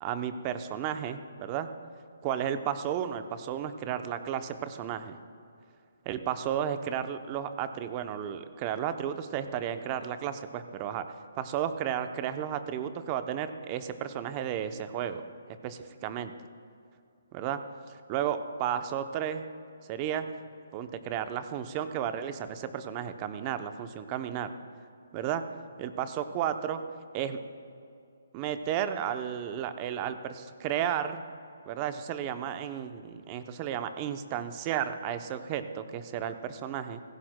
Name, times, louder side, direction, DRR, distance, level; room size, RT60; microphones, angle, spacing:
voice 1, 0.0-1.7 2.2-5.2 6.1-11.1 11.4-15.2 15.6-16.3 17.3-17.6 17.9-19.4 19.9-20.3 20.7-24.5 25.1-25.4 25.8-26.8 27.1-27.4 28.3-31.2 31.7-37.0, right 9 dB, 25° right, 9 dB, 0.6 m, -33 dB
16.5 x 16.0 x 2.2 m, 2.5 s
hypercardioid pair, 155°, 0 cm